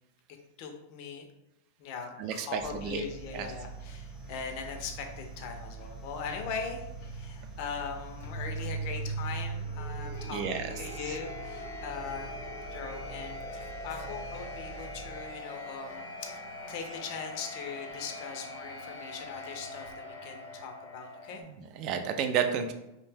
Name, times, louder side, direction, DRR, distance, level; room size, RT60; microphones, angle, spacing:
voice 1, 0.6-1.3 1.8-12.4 12.6-16.3 16.7-21.4, left 6 dB, 50° left, 4 dB, 0.5 m, -40 dB
voice 2, 2.2-3.0 3.3-3.5 10.3-10.7 11.1-11.2 21.4-22.7, right 7 dB, 45° right, 7 dB, 0.3 m, -32 dB
sound 1, 2.6-15.5, right 4 dB, 30° right, 0.8 m, -46 dB
sound 2, 3.3-21.4, right 1 dB, 75° left, 0.8 m, -41 dB
2.6 x 2.1 x 3.3 m, 0.91 s
supercardioid pair, 135°, 0 cm